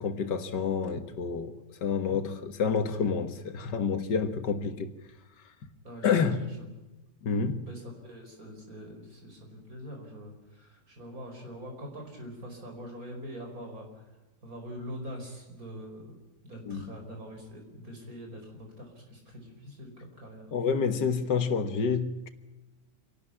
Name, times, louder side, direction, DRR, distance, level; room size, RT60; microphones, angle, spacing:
voice 1, 0.0-1.5 1.8-4.9 5.6-5.7 6.0-6.4 7.2-7.7 16.7-16.9 20.5-22.3, left 6 dB, 90° left, 2.0 m, -28 dB
voice 2, 5.8-6.5 7.7-14.1 14.4-16.2 16.4-20.5, equal, 55° right, 5.4 m, -43 dB
26.5 x 12.0 x 9.9 m
omnidirectional pair, 1.8 m